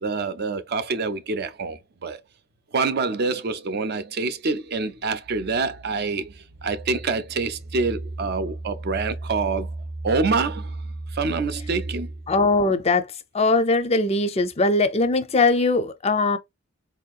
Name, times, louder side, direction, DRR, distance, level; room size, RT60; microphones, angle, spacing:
voice 1, 0.0-2.2 2.7-9.7 10.0-10.8 11.1-12.1, right 4 dB, 50° right, 0.5 m, -26 dB
sound 1, 4.9-12.7, right 2 dB, 75° right, 0.9 m, -36 dB
voice 2, 12.3-13.1 13.3-16.4, left 3 dB, 30° left, 0.5 m, -20 dB
4.3 x 2.8 x 2.3 m
head